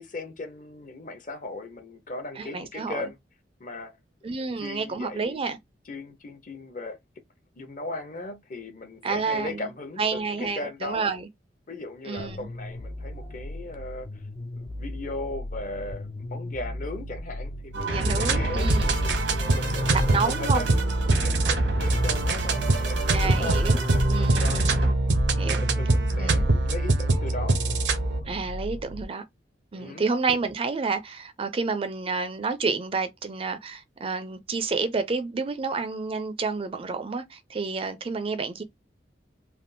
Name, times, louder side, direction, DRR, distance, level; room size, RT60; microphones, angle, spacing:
voice 1, 0.0-3.2 3.6-4.0 4.6-5.4 5.9-7.0 7.6-11.1 11.7-14.1 14.6-17.9 18.2-18.7 19.5-22.6 22.9-24.6 25.4-27.6 29.7-30.0, left 2 dB, 45° left, 0.8 m, -37 dB
voice 2, 2.4-3.1 4.2-5.6 9.0-9.6 10.0-11.3 12.1-12.5 17.8-19.0 20.1-20.6 23.1-23.8 24.1-24.9 25.4-25.6 26.2-26.5 28.3-29.2 29.7-38.6, right 4 dB, 30° right, 0.4 m, -29 dB
sound 1, 12.2-29.0, left 1 dB, 30° left, 0.3 m, -37 dB
sound 2, 17.7-24.9, right 2 dB, 90° right, 1.0 m, -29 dB
sound 3, 18.0-28.2, right 2 dB, 70° right, 0.6 m, -24 dB
3.4 x 2.4 x 2.6 m
head